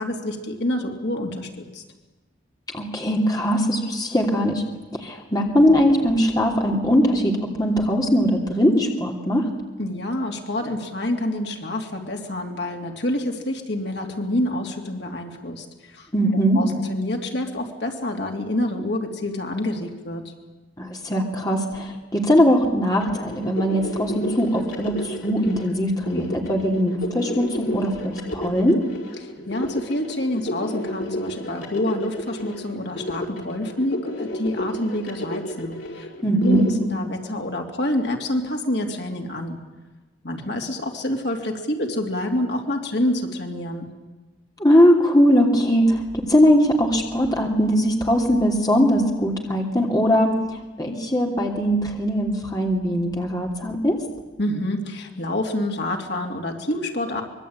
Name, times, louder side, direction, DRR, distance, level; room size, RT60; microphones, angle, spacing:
voice 1, 0.0-1.8 9.8-20.3 29.2-36.1 36.4-39.6 40.2-43.9 54.4-57.2, left 1 dB, 60° left, 2 dB, 3.2 m, -27 dB
voice 2, 2.7-4.6 5.0-9.4 16.1-16.6 20.8-28.8 36.2-36.7 44.6-50.3 50.8-54.0, equal, 20° left, 0 dB, 2.9 m, -20 dB
sound 1, 23.0-36.7, left 1 dB, 85° left, 5.8 m, -31 dB
25.0 x 22.5 x 9.0 m, 1.2 s
head